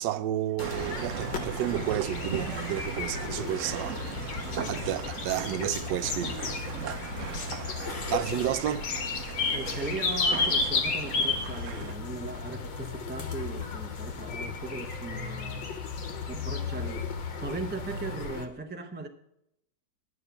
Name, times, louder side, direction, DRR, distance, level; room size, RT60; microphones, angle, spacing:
voice 1, 0.0-4.0 4.7-6.4 8.1-8.8, right 12 dB, 75° right, 1.2 m, -31 dB
sound 1, 0.6-18.5, left 4 dB, 85° left, 2.0 m, -33 dB
sound 2, 0.6-11.9, right 7 dB, 55° right, 0.9 m, -38 dB
sound 3, 1.1-16.3, left 10 dB, 60° left, 0.8 m, -45 dB
voice 2, 9.5-15.7 16.3-17.1 17.4-19.1, right 3 dB, 15° right, 0.3 m, -38 dB
11.0 x 7.2 x 6.9 m
omnidirectional pair, 2.0 m